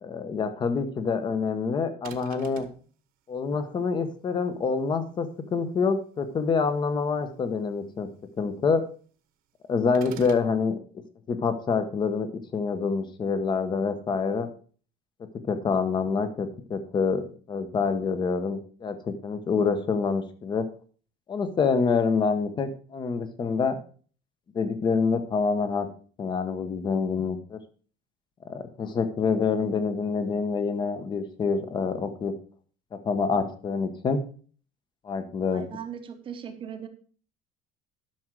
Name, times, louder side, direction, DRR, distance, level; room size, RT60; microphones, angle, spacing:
voice 1, 0.0-2.7 3.3-8.1 8.4-8.8 9.7-10.8 11.3-14.5 15.4-20.7 21.3-23.8 24.5-25.9 26.2-27.6 28.4-32.3 33.0-34.2 35.0-35.6, left 5 dB, 25° left, 10 dB, 1.0 m, -26 dB
sound 1, 2.0-2.8 9.9-10.5, right 9 dB, 50° right, 1.3 m, -44 dB
voice 2, 35.5-36.9, right 8 dB, 25° right, 7 dB, 1.0 m, -38 dB
11.5 x 6.3 x 4.7 m, 0.41 s
cardioid pair, 180°, 19 cm